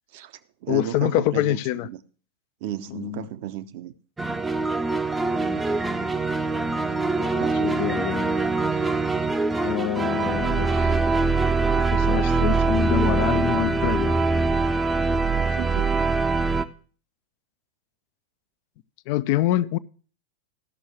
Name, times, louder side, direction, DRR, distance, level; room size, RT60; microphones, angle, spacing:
voice 1, 0.1-2.0 2.6-3.9 7.4-7.6 15.5-15.9, right 12 dB, 50° right, 0.7 m, -34 dB
voice 2, 0.7-1.9 2.9-3.3 5.4-5.6 7.2-8.3 9.6-11.0 11.8-14.3 19.1-19.8, left 14 dB, 45° left, 0.5 m, -26 dB
sound 1, 4.2-16.6, right 3 dB, 10° right, 0.6 m, -23 dB
14.0 x 6.2 x 6.3 m
figure-of-eight pair, 90°, 0 cm